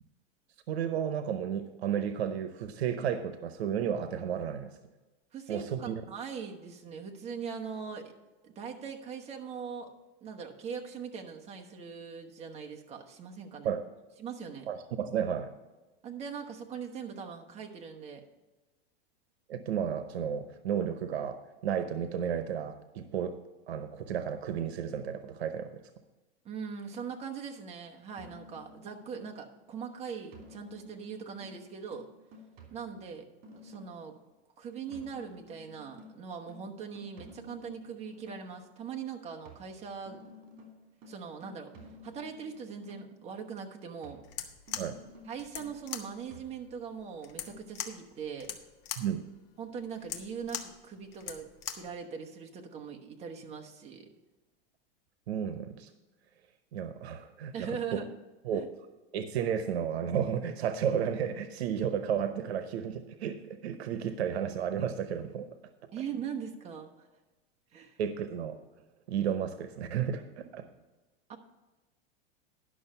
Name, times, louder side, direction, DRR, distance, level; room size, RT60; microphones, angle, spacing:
voice 1, 0.7-4.7 5.5-5.9 13.6-13.8 14.7-15.5 19.5-23.3 23.7-25.8 44.8-45.0 49.0-49.2 55.3-55.9 56.7-57.8 58.5-58.6 59.1-65.5 68.0-68.5 69.1-70.7, right 8 dB, 90° right, 9 dB, 0.9 m, -32 dB
voice 2, 5.3-8.1 8.4-9.9 10.2-13.8 14.2-14.7 16.0-18.2 26.4-32.1 32.7-33.2 33.6-34.1 34.6-40.3 41.1-41.7 42.0-44.2 45.3-48.5 49.6-54.1 57.5-58.1 58.5-58.7 65.9-66.9 67.7-68.0 71.3-71.4, right 6 dB, 20° right, 2 dB, 1.1 m, -41 dB
sound 1, 28.2-29.6 30.3-34.1 34.9-38.6 39.5-43.3 44.0-47.0 47.5-47.6, left 1 dB, 60° right, 3.1 m, -53 dB
sound 2, 44.2-52.0, left 9 dB, 35° left, 1.0 m, -42 dB
11.0 x 6.3 x 5.5 m, 1.2 s
supercardioid pair, 150°, 31 cm